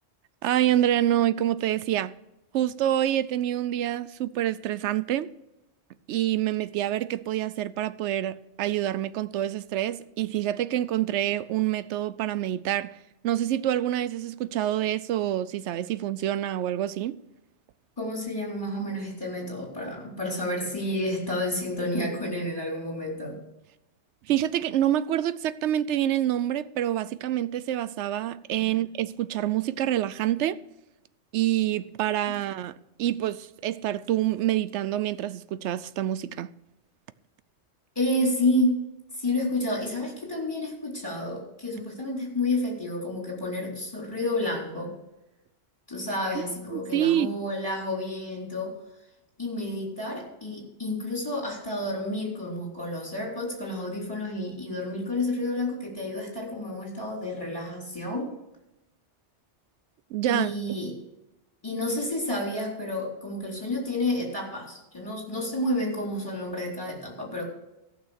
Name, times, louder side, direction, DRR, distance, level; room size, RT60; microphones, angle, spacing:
voice 1, 0.4-2.2 2.5-5.3 6.1-13.0 13.2-17.2 24.3-30.6 31.3-36.5 46.7-47.3 60.1-60.5, right 12 dB, 85° right, 0.9 m, -27 dB
voice 2, 18.0-23.4 28.6-28.7 32.3-32.4 38.0-38.8 39.1-44.9 45.9-48.8 49.4-58.3 60.3-60.9 61.6-67.5, left 1 dB, 20° left, 3.8 m, -30 dB
14.5 x 6.4 x 6.4 m
omnidirectional pair, 1.2 m